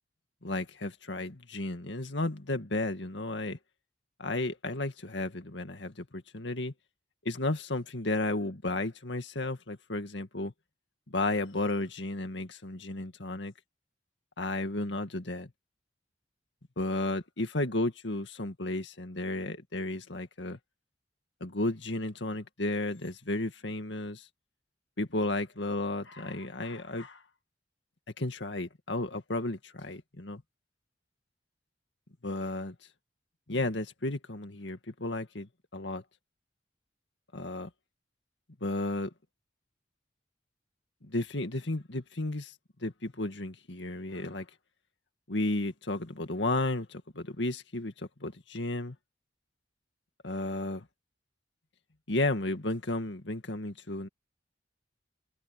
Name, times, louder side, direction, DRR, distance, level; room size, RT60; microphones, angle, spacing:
voice 1, 0.4-3.6 4.2-6.7 7.3-10.5 11.1-13.5 14.4-15.5 16.8-20.6 21.4-24.3 25.0-27.2 28.2-30.4 32.2-32.7 33.5-36.0 37.3-37.7 38.6-39.1 41.0-42.5 42.8-44.5 45.3-49.0 50.2-50.8 52.1-54.1, left 2 dB, 70° left, 2.1 m, -33 dB
head